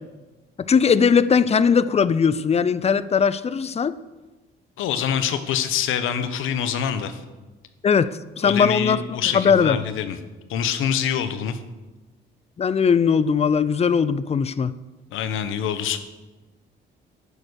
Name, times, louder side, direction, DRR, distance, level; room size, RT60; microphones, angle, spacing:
voice 1, 0.6-3.9 7.8-9.8 12.6-14.7, left 6 dB, 30° left, 16 dB, 0.6 m, -19 dB
voice 2, 4.8-7.2 8.4-10.2 10.5-11.6 15.1-16.0, left 8 dB, 85° left, 11 dB, 1.1 m, -25 dB
10.0 x 9.8 x 6.4 m, 1.2 s
cardioid pair, 90°, 20 cm